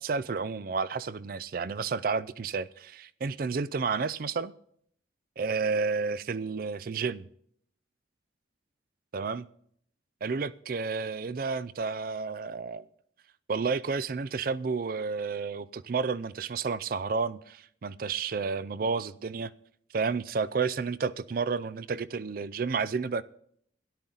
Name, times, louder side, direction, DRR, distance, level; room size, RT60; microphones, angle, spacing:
voice 1, 0.0-4.5 5.4-7.3 9.1-9.5 10.2-12.9 13.5-19.5 19.9-23.2, right 5 dB, 50° right, 0.4 m, -31 dB
13.5 x 11.5 x 3.9 m
head